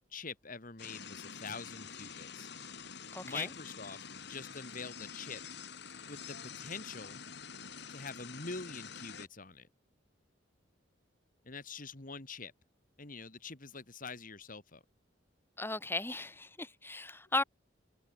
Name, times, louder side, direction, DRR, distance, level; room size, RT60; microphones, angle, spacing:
voice 1, 0.1-2.5 3.2-4.0 4.3-5.4 6.1-7.2 7.9-9.7 11.5-12.5 13.0-14.8, left 4 dB, 45° left, 2.1 m, -45 dB
sound 1, 0.8-9.3, left 6 dB, 60° left, 4.4 m, -47 dB
voice 2, 3.1-3.5 15.6-17.4, left 2 dB, 10° left, 2.7 m, -36 dB
head